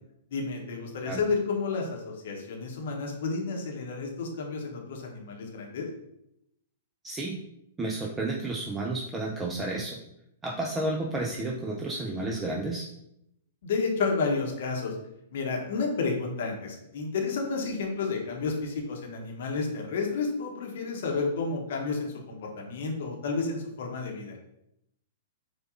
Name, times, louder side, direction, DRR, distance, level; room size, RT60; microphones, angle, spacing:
voice 1, 0.3-5.9 13.6-14.9 15.3-24.4, left 4 dB, 60° left, 1 dB, 0.8 m, -31 dB
voice 2, 7.0-7.4 7.8-10.0 10.4-12.9, right 2 dB, 15° right, -1 dB, 0.4 m, -31 dB
4.6 x 2.3 x 2.5 m, 0.82 s
figure-of-eight pair, 110°, 0 cm